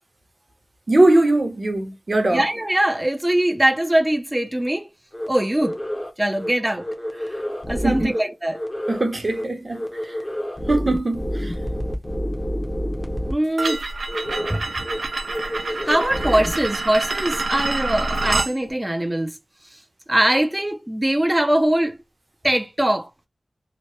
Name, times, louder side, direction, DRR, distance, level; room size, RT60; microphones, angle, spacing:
voice 1, 0.9-2.4 7.8-8.1 8.9-10.2 10.7-11.5, right 2 dB, 45° right, 0.8 m, -20 dB
voice 2, 2.3-4.9 5.3-5.8 6.2-6.9 7.2-7.3 7.7-8.6 13.3-13.8 14.5-14.6 15.9-19.3 20.1-22.0 22.4-23.1, right 1 dB, 15° right, 0.4 m, -21 dB
sound 1, 5.1-5.3 5.6-6.1 6.4-6.5 6.8-8.2 8.5-9.0 9.3-9.4 9.7-13.3 13.6-13.7 14.1-14.6 14.8-15.0 15.3-16.5, equal, 25° left, 0.7 m, -28 dB
sound 2, 13.6-18.5, right 3 dB, 85° right, 0.4 m, -26 dB
2.9 x 2.1 x 3.0 m
wide cardioid pair, 60°, 0 cm